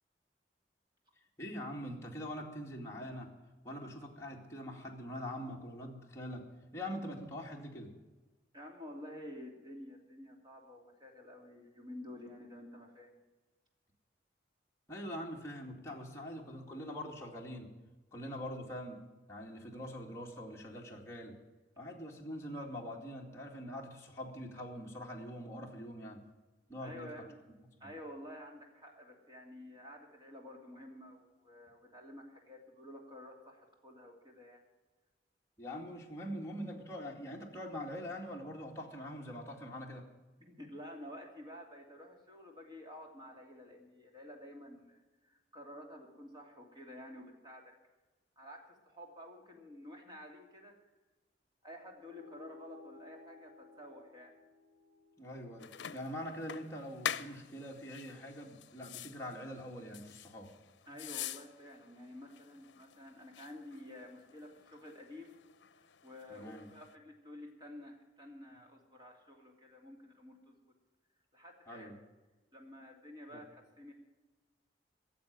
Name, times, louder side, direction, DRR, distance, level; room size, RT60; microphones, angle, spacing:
voice 1, 1.4-3.3 3.6-6.4 6.7-7.9 14.9-17.7 18.1-19.0 19.3-21.4 21.8-26.2 26.7-27.1 27.8-27.9 35.6-40.1 55.2-60.5 66.3-66.7 71.7-72.0 73.3-73.4, equal, 15° left, -2 dB, 2.3 m, -43 dB
voice 2, 8.5-13.2 26.8-27.3 27.8-34.6 40.4-47.7 48.4-50.7 51.6-54.3 60.9-65.4 66.0-70.5 71.3-71.9 72.5-73.9, left 1 dB, 25° right, 1 dB, 2.9 m, -51 dB
sound 1, 52.0-56.8, left 3 dB, 65° right, 5.1 m, -57 dB
sound 2, 55.6-67.0, left 9 dB, 85° left, 0.6 m, -46 dB
15.5 x 7.5 x 9.4 m, 1.2 s
head